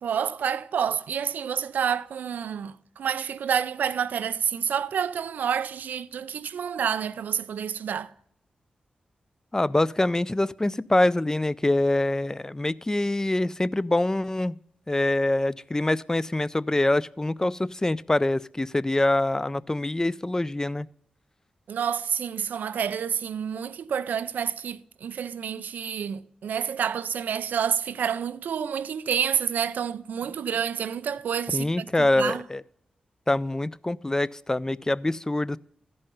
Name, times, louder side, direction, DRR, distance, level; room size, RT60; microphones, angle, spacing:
voice 1, 0.0-8.1 21.7-32.4, right 8 dB, 80° right, 0.4 m, -29 dB
voice 2, 9.5-14.5 14.9-20.9 31.5-32.6 33.3-35.6, left 2 dB, 20° left, 0.4 m, -25 dB
14.0 x 5.4 x 5.6 m
cardioid pair, 45°, 3 cm